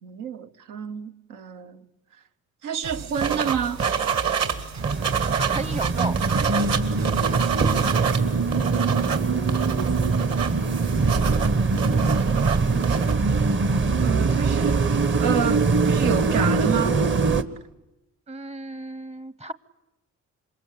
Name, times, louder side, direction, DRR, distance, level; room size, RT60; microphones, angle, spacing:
voice 1, 0.0-1.8 2.6-3.8 8.2-9.3 11.8-13.5 14.0-17.0, right 8 dB, 90° right, 1.2 m, -30 dB
sound 1, 2.8-7.9, right 4 dB, 75° right, 6.6 m, -37 dB
sound 2, 3.2-4.5 4.8-8.2 8.5-13.1, right 7 dB, 55° right, 2.8 m, -27 dB
sound 3, 4.8-17.4, right 4 dB, 40° right, 1.2 m, -22 dB
voice 2, 5.5-6.2 18.3-19.5, right 3 dB, 20° right, 0.9 m, -33 dB
27.0 x 23.0 x 8.5 m
cardioid pair, 90°, 30 cm